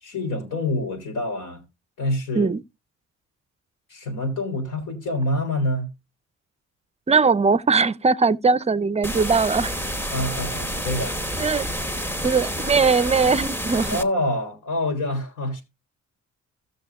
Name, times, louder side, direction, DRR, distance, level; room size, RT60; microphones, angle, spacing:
voice 1, 0.0-1.6 2.0-2.5 3.9-5.9 10.1-11.2 13.9-15.6, left 1 dB, 85° left, 3.4 m, -26 dB
voice 2, 7.1-9.7 11.4-11.7 12.2-14.0, right 4 dB, 20° right, 0.5 m, -20 dB
sound 1, 9.0-14.0, equal, 5° left, 0.9 m, -29 dB
16.5 x 6.4 x 2.3 m
cardioid pair, 90°, 30 cm